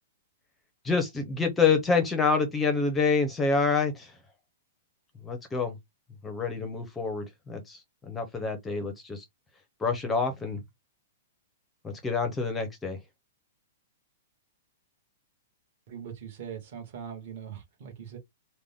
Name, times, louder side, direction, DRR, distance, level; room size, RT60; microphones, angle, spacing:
voice 1, 0.8-4.2 5.2-5.8 6.2-9.2 9.8-10.6 11.8-13.0, left 4 dB, 10° left, 0.6 m, -27 dB
voice 2, 15.9-18.2, right 8 dB, 35° right, 1.3 m, -41 dB
3.7 x 2.1 x 3.5 m
hypercardioid pair, 175°, 0 cm